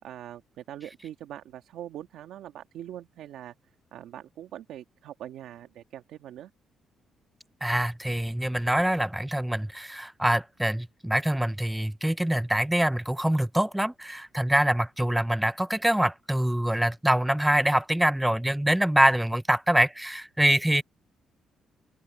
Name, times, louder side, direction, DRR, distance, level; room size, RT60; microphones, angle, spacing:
voice 1, 0.0-3.5 3.9-6.5, right 11 dB, 80° right, 1.7 m, -42 dB
voice 2, 7.6-20.8, right 1 dB, 5° right, 0.4 m, -25 dB
open air
cardioid pair, 90°, 0 cm